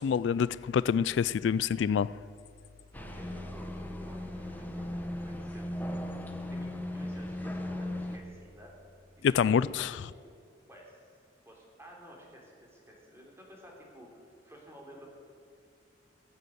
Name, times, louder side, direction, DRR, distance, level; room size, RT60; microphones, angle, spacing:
voice 1, 0.0-2.1 9.2-10.0, left 7 dB, 75° left, 19 dB, 0.3 m, -26 dB
sound 1, 2.9-8.2, left 1 dB, 10° left, 1.1 m, -38 dB
sound 2, 2.9-9.8, left 1 dB, 75° right, 2.2 m, -49 dB
voice 2, 3.1-6.1 6.5-8.7 9.2-9.6 9.9-10.0 10.7-11.1 11.5-15.1, equal, 15° right, -1 dB, 3.5 m, -52 dB
21.0 x 7.6 x 8.0 m, 2.4 s
head